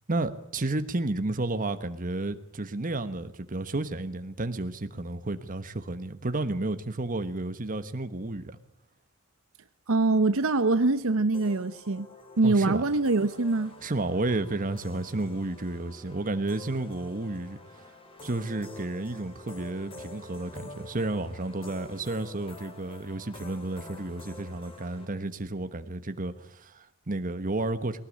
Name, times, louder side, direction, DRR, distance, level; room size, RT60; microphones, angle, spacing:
voice 1, 0.1-8.6 12.4-12.8 13.8-17.6 18.2-28.0, right 2 dB, 40° right, 1.2 m, -32 dB
voice 2, 9.9-12.1 12.4-13.8, right 3 dB, 65° right, 0.8 m, -24 dB
sound 1, 11.3-25.1, left 2 dB, 25° left, 3.1 m, -47 dB
20.0 x 18.0 x 8.6 m
head